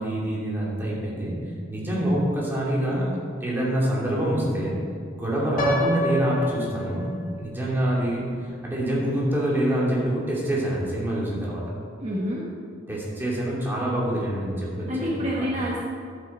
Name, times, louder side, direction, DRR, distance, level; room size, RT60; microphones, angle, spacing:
voice 1, 0.0-1.3 1.7-3.1 3.4-4.8 5.1-7.1 7.4-11.6 12.9-15.5, right 1 dB, 10° right, -6 dB, 2.6 m, -26 dB
Piano, 5.6-7.5, left 1 dB, 50° left, 1.4 m, -28 dB
voice 2, 12.0-12.5 14.9-15.8, equal, 40° right, -4 dB, 1.1 m, -27 dB
12.0 x 7.9 x 4.3 m, 2.3 s
head